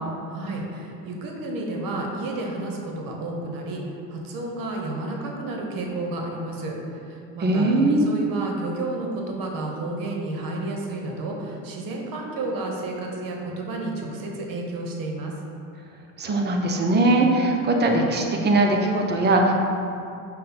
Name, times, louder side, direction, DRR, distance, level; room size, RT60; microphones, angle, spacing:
voice 1, 0.3-3.8 4.1-6.7 7.1-15.3, right 2 dB, 45° right, 0 dB, 0.8 m, -31 dB
voice 2, 7.4-8.1 16.2-19.5, right 2 dB, 25° right, 1 dB, 0.4 m, -20 dB
5.4 x 2.2 x 4.1 m, 2.6 s
hypercardioid pair, 80°, 49 cm